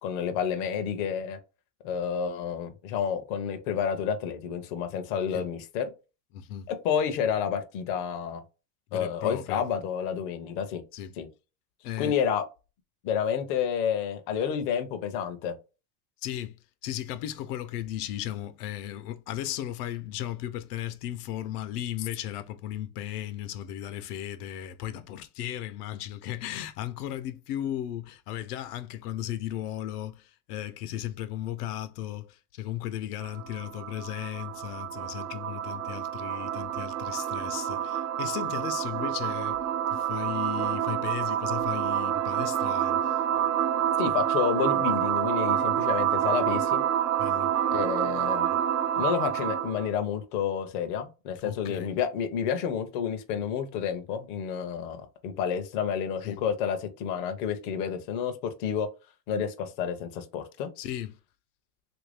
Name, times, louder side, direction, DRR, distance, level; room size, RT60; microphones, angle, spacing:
voice 1, 0.0-1.4 1.8-5.9 6.7-8.4 8.9-10.8 11.2-11.3 12.0-12.4 13.0-15.6 44.0-46.8 47.7-48.5 49.0-58.9 59.3-60.7, left 7 dB, 35° left, 0.5 m, -30 dB
voice 2, 6.3-6.7 8.9-9.6 10.9-11.1 11.8-12.2 16.2-16.6 16.8-39.6 39.9-43.2 47.2-47.5 51.4-51.9 56.2-56.4 60.8-61.1, left 12 dB, 85° left, 0.7 m, -36 dB
sound 1, 33.2-49.9, right 10 dB, 60° right, 0.5 m, -28 dB
3.2 x 2.6 x 3.3 m
supercardioid pair, 170°, 46 cm